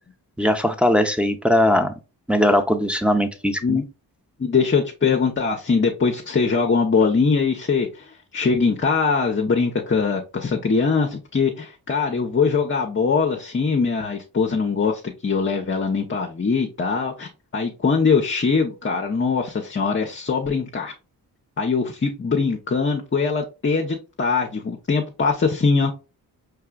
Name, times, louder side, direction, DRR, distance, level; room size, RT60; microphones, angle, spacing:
voice 1, 0.4-1.9 2.3-3.8, left 1 dB, 5° right, 0.7 m, -19 dB
voice 2, 4.4-20.9 21.6-25.9, left 5 dB, 30° left, 0.7 m, -22 dB
4.6 x 3.4 x 2.3 m
supercardioid pair, 50°, 41 cm